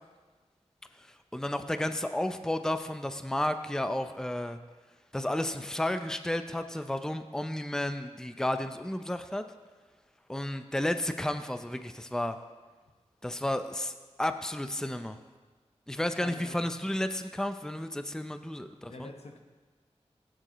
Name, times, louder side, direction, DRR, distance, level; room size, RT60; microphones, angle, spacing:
voice 1, 1.3-4.6 5.1-9.4 10.3-12.4 13.2-13.9 14.2-15.2 15.9-19.1, left 1 dB, 5° left, 8 dB, 0.6 m, -32 dB
voice 2, 16.2-16.7 18.7-19.4, left 2 dB, 65° left, 4 dB, 1.1 m, -46 dB
16.0 x 9.0 x 3.1 m, 1.4 s
cardioid pair, 50°, 11 cm